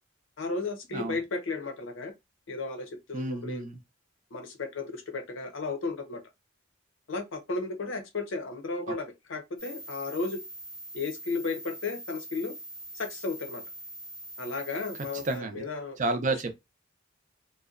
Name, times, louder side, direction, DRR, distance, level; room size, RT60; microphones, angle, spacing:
voice 1, 0.4-2.1 2.5-3.6 4.3-6.2 7.1-10.4 10.9-12.5 12.9-13.6 14.4-16.0, left 3 dB, 85° left, 0.7 m, -34 dB
voice 2, 3.1-3.8 15.2-15.6 16.0-16.6, right 2 dB, 40° right, 0.4 m, -30 dB
sound 1, 9.6-15.4, right 1 dB, 20° left, 0.6 m, -43 dB
2.6 x 2.1 x 2.4 m
head